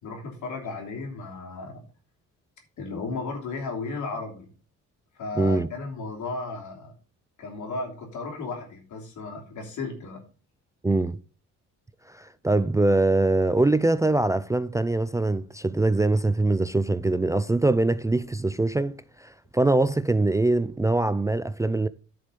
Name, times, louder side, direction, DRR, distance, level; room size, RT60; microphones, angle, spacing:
voice 1, 0.0-1.8 2.8-4.5 5.2-6.9 7.4-10.2, left 3 dB, 75° left, 3.1 m, -34 dB
voice 2, 5.4-5.7 10.8-11.2 12.1-21.9, right 2 dB, 10° right, 0.4 m, -23 dB
10.0 x 5.2 x 5.2 m
cardioid pair, 90°, 30 cm